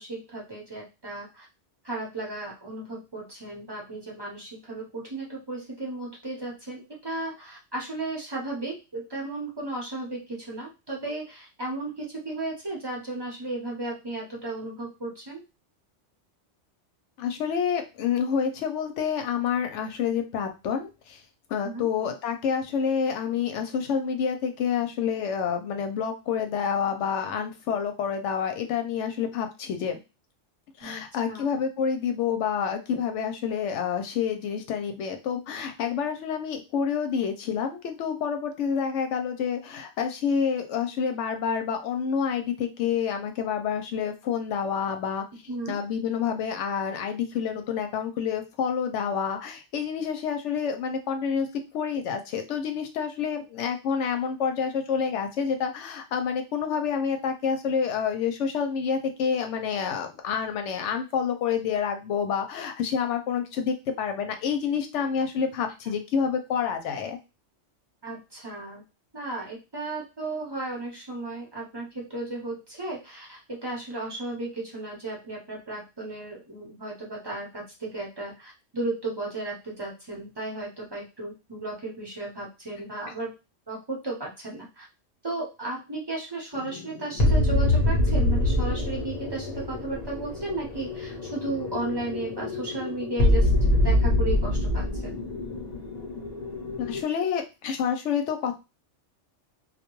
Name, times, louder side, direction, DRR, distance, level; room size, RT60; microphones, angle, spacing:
voice 1, 0.0-1.5 1.8-15.4 21.6-21.9 30.8-31.5 45.5-45.8 68.0-68.8 69.1-83.3 83.7-84.9 85.2-95.1, right 2 dB, 25° right, -2 dB, 0.8 m, -34 dB
voice 2, 17.2-21.2 21.5-30.0 30.8-45.2 45.7-51.5 51.7-67.2 96.8-98.6, left 7 dB, 80° left, 6 dB, 0.9 m, -28 dB
sound 1, 86.5-97.0, left 1 dB, 40° left, 0.7 m, -25 dB
2.3 x 2.2 x 3.0 m, 0.27 s
omnidirectional pair, 1.2 m